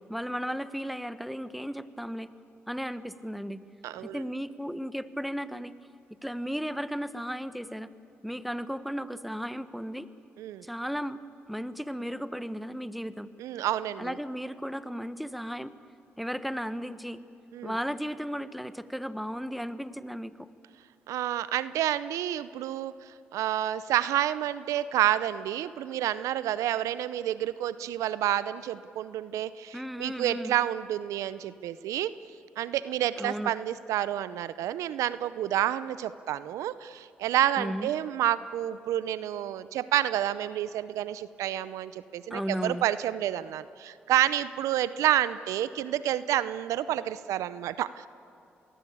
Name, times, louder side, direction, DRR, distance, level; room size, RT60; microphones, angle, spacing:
voice 1, 0.1-2.3 2.7-3.6 4.0-5.8 6.2-7.9 8.2-10.1 10.6-11.2 11.5-13.3 14.0-15.7 16.2-17.2 17.6-20.5 29.7-30.5 33.2-33.5 37.6-38.0 42.3-42.9, equal, ahead, 13 dB, 1.3 m, -35 dB
voice 2, 3.8-4.2 10.4-10.7 13.4-14.2 17.5-17.8 21.1-22.9 23.3-32.1 32.6-48.1, right 12 dB, 80° right, 16 dB, 0.6 m, -29 dB
26.0 x 20.0 x 8.6 m, 2.7 s
supercardioid pair, 50°, 5 cm